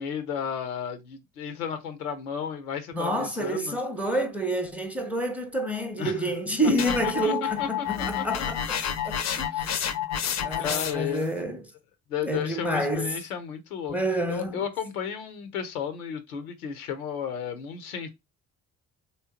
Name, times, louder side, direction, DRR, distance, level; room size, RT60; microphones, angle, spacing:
voice 1, 0.0-3.8 6.0-6.3 6.8-7.3 7.6-8.5 9.4-9.7 10.6-11.3 12.1-14.0 14.3-18.1, left 8 dB, 80° left, 0.7 m, -33 dB
voice 2, 2.9-8.8 9.0-9.3 9.6-9.7 10.4-11.6 12.2-13.2 13.9-14.6, right 1 dB, 5° right, 0.7 m, -28 dB
sound 1, 6.8-11.2, left 9 dB, 40° left, 0.6 m, -29 dB
3.3 x 2.9 x 2.7 m
figure-of-eight pair, 45°, 43 cm